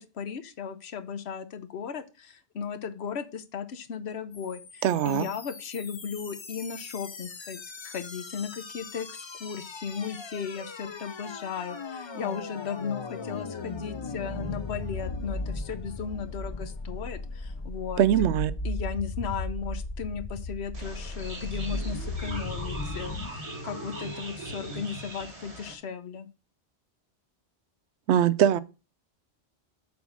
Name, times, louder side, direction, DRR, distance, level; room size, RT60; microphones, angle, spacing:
voice 1, 0.0-18.0 18.6-26.3, left 6 dB, 70° left, 1.0 m, -36 dB
sound 1, 4.3-23.3, left 3 dB, 35° left, 0.5 m, -37 dB
voice 2, 4.8-5.3 18.0-18.5 28.1-28.6, right 10 dB, 85° right, 0.9 m, -22 dB
sound 2, 20.7-25.7, right 1 dB, 30° right, 1.7 m, -39 dB
7.0 x 4.0 x 6.4 m
omnidirectional pair, 1.1 m